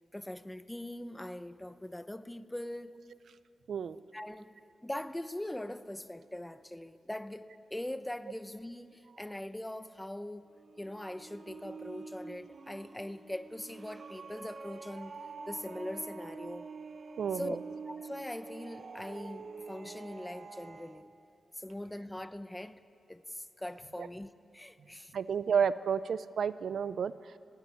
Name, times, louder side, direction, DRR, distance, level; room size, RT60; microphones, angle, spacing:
voice 1, 0.1-3.0 4.1-4.5 4.8-16.7 17.3-17.6 17.9-21.1 21.5-22.8 23.1-25.1, left 1 dB, 10° left, 0.7 m, -42 dB
voice 2, 3.7-4.0 17.2-17.6 24.0-24.1 25.1-27.4, right 7 dB, 75° right, 0.5 m, -31 dB
sound 1, 10.5-21.0, right 4 dB, 55° right, 1.0 m, -47 dB
20.0 x 15.5 x 9.6 m
cardioid pair, 80°, 0 cm